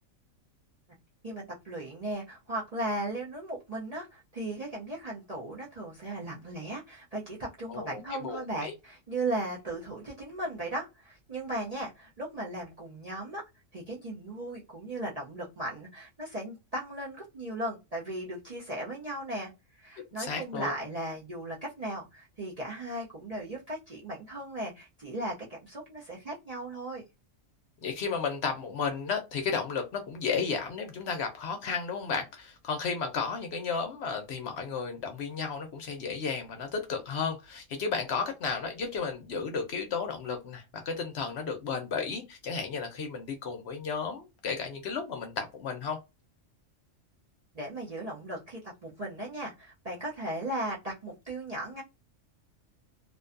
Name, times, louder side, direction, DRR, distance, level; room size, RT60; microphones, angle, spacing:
voice 1, 1.2-13.4 13.7-25.3 25.6-27.0 47.5-51.8, right 1 dB, 45° right, 0.5 m, -37 dB
voice 2, 7.7-8.7 20.2-20.7 27.8-46.0, left 5 dB, 65° left, 0.8 m, -33 dB
2.5 x 2.2 x 2.4 m
omnidirectional pair, 1.3 m